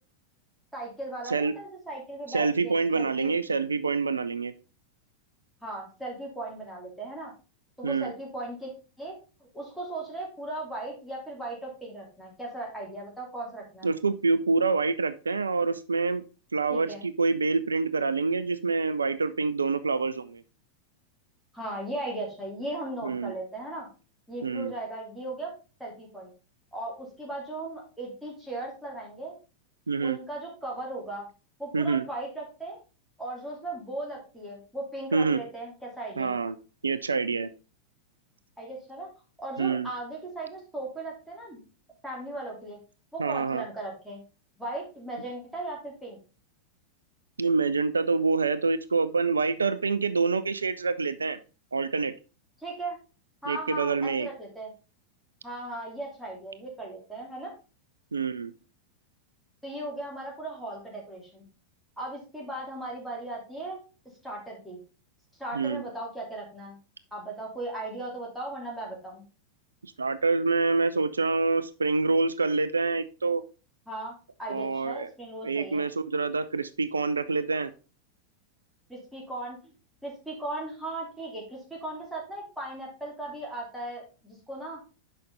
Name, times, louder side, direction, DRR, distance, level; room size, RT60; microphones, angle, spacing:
voice 1, 0.7-3.3 5.6-7.3 7.8-8.7 9.0-9.1 9.5-13.9 16.7-17.0 21.5-23.9 24.3-25.5 25.8-26.3 26.7-29.3 30.0-31.3 31.6-32.8 33.2-36.3 38.6-39.1 39.4-41.6 42.0-42.8 43.1-44.2 44.6-46.2 52.6-53.0 53.4-54.7 55.4-57.5 59.6-61.4 62.0-63.8 64.2-64.8 65.4-66.8 67.1-69.2 73.9-75.8 78.9-79.7 80.0-84.8, right 2 dB, ahead, -3 dB, 2.9 m, -37 dB
voice 2, 2.3-4.5 7.8-8.1 13.8-16.2 16.5-20.4 23.0-23.3 24.4-24.7 29.9-30.2 31.7-32.0 35.1-35.4 36.2-36.5 36.8-37.5 39.6-39.9 43.2-43.6 47.4-51.4 51.7-52.1 53.5-54.3 58.1-58.5 65.5-65.8 69.8-73.4 74.5-75.1 75.4-77.7, right 4 dB, 75° right, 14 dB, 0.3 m, -26 dB
6.4 x 5.3 x 3.9 m, 0.34 s
figure-of-eight pair, 90°, 0 cm